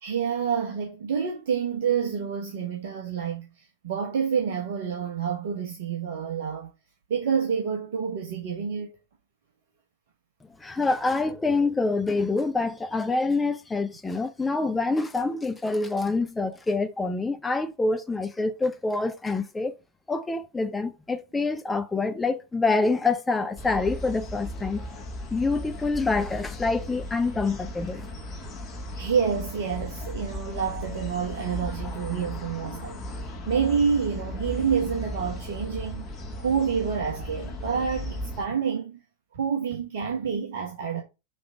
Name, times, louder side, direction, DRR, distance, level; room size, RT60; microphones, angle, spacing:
voice 1, 0.0-6.7 7.1-9.0 28.9-33.0 33.5-36.1 36.4-39.0 39.3-41.0, right 6 dB, 55° right, 1.1 m, -28 dB
voice 2, 10.6-19.7 20.1-24.8 25.3-28.1, left 3 dB, 10° left, 0.6 m, -26 dB
sound 1, 23.6-38.5, equal, 25° left, 1.6 m, -36 dB
5.7 x 3.5 x 4.9 m
figure-of-eight pair, 90°, 0 cm